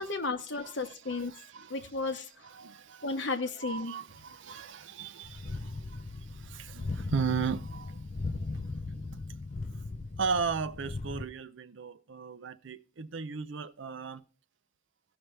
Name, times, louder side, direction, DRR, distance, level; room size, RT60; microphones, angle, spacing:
voice 1, 0.0-1.3 1.7-2.5 3.0-3.9, left 3 dB, 65° left, 1.1 m, -33 dB
voice 2, 0.6-1.7 2.4-3.2 3.6-8.5 10.2-14.2, right 5 dB, 70° right, 0.6 m, -36 dB
sound 1, 5.2-11.3, left 3 dB, 40° left, 0.5 m, -38 dB
16.0 x 5.9 x 3.3 m
head